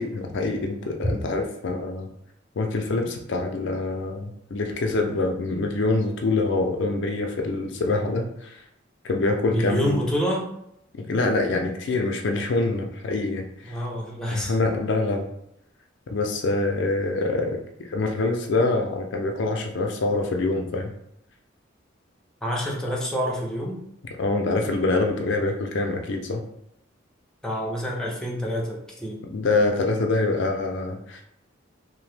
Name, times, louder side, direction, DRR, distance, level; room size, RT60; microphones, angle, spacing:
voice 1, 0.0-2.1 2.6-8.6 9.0-10.1 10.9-13.7 14.3-15.3 16.1-20.9 24.2-26.4 29.2-31.2, left 2 dB, 65° left, 3 dB, 0.4 m, -25 dB
voice 2, 9.5-10.5 13.6-14.5 22.4-23.8 27.4-29.2, equal, 5° left, -3 dB, 0.5 m, -27 dB
2.8 x 2.0 x 3.2 m, 0.77 s
head